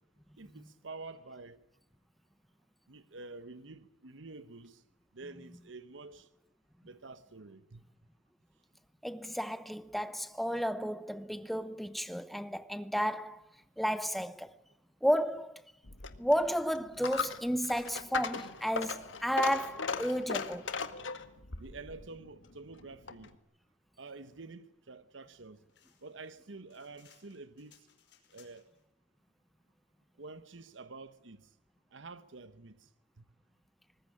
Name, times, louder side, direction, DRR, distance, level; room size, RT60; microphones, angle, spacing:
voice 1, 0.4-1.6 2.9-4.8 5.1-6.3 6.8-7.8 21.6-23.3 24.0-25.6 26.0-27.9 28.3-28.6 30.2-31.5 31.9-32.9 33.2-33.3, right 3 dB, 85° right, 1.1 m, -48 dB
voice 2, 9.0-13.4 13.8-14.5 15.0-15.6 16.2-20.8, equal, ahead, 1.0 m, -32 dB
Coin (dropping), 15.8-23.4, left 5 dB, 90° left, 1.8 m, -39 dB
sound 1, 25.7-28.8, left 9 dB, 65° left, 5.3 m, -65 dB
24.0 x 20.0 x 9.9 m
head